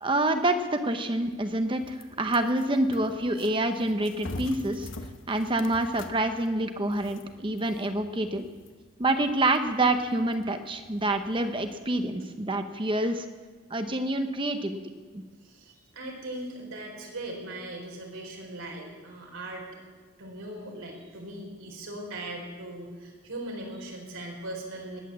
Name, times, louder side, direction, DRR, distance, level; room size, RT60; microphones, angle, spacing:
voice 1, 0.0-4.9 5.3-8.5 9.0-13.3 13.7-14.8 15.1-15.2, right 1 dB, 25° right, 7 dB, 0.9 m, -27 dB
sound 1, 1.2-12.1, left 2 dB, 65° left, 1.1 m, -46 dB
voice 2, 15.4-19.7 20.2-25.0, right 1 dB, 85° right, 0 dB, 4.2 m, -39 dB
20.0 x 9.1 x 7.4 m, 1.5 s
head